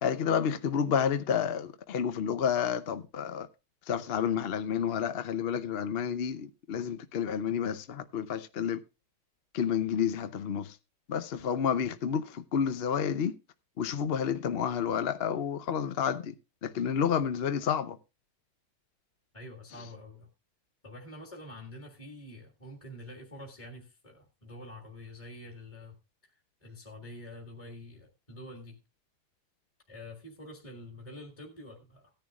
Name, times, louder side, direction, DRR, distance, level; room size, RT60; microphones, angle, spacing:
voice 1, 0.0-3.5 3.9-8.8 9.5-10.8 11.1-13.3 13.8-16.3 16.6-18.0, left 7 dB, 55° left, 0.7 m, -30 dB
voice 2, 19.3-20.3 20.8-26.0 26.2-28.8 29.9-32.1, left 1 dB, 20° left, 1.9 m, -47 dB
17.0 x 10.5 x 2.4 m
omnidirectional pair, 1.8 m